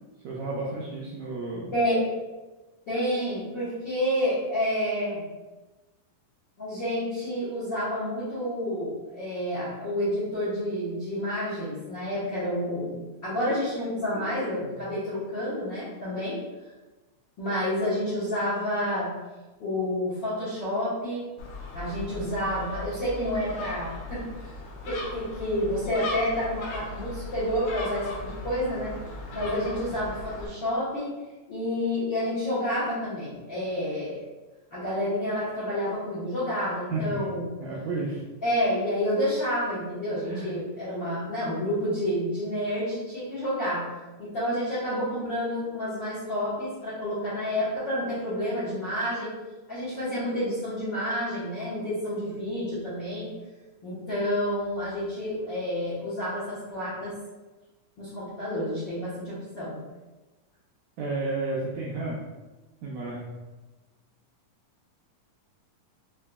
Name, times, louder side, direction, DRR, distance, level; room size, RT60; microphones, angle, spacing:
voice 1, 0.2-1.7 36.9-37.2 37.6-38.2 40.3-40.5 61.0-62.2 62.8-63.3, right 2 dB, 80° right, -5 dB, 1.7 m, -32 dB
voice 2, 1.7-2.0 2.9-5.2 6.6-16.4 17.4-19.1 19.6-21.2 21.7-24.2 24.8-28.9 29.3-31.1 31.5-34.2 34.7-37.5 38.4-43.8 44.2-49.3 49.7-53.3 53.8-57.1 58.0-59.8, equal, 60° left, -12 dB, 1.1 m, -29 dB
Gull seagull, 21.4-30.5, left 2 dB, 90° left, 1.6 m, -38 dB
5.5 x 2.6 x 2.2 m, 1.2 s
omnidirectional pair, 3.8 m